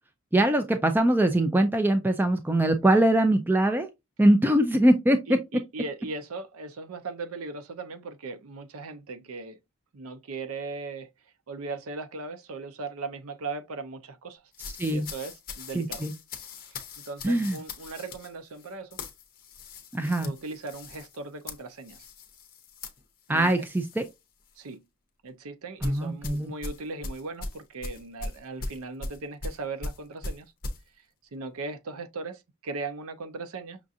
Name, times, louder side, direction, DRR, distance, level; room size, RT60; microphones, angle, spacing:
voice 1, 0.3-3.9 4.2-5.2 14.8-15.1 15.7-16.1 17.2-17.6 19.9-20.3 23.3-24.0 25.8-26.5, right 1 dB, 10° right, 0.3 m, -22 dB
voice 2, 5.3-9.6 9.9-11.1 11.5-14.5 14.9-16.0 16.7-19.0 20.2-22.1 23.3-23.6 24.6-24.9 25.2-30.5 30.9-31.1 31.3-33.8, right 3 dB, 80° right, 0.6 m, -38 dB
sound 1, 14.5-24.1 24.5-24.7 25.8-30.8, left 2 dB, 40° left, 0.8 m, -40 dB
5.9 x 2.4 x 2.6 m
head